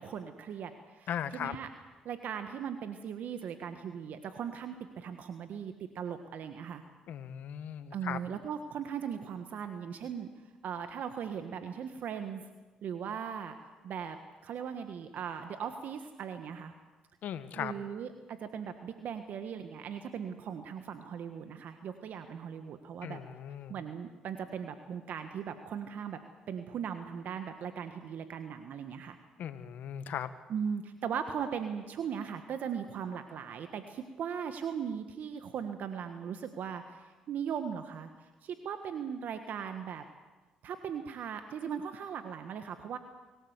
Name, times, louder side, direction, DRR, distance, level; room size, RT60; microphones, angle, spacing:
voice 1, 0.0-1.7 2.0-6.8 7.9-10.3 10.6-12.5 12.8-13.6 13.8-14.2 14.4-16.7 17.5-23.2 23.7-26.2 26.5-29.2 30.5-38.1 38.4-40.0 40.6-43.0, right 7 dB, 65° right, 8 dB, 1.5 m, -38 dB
voice 2, 1.1-1.6 7.1-8.2 17.2-17.7 23.0-23.7 29.4-30.3, left 9 dB, 70° left, 12 dB, 1.5 m, -38 dB
25.5 x 17.5 x 8.2 m, 1.2 s
hypercardioid pair, 55°, 3 cm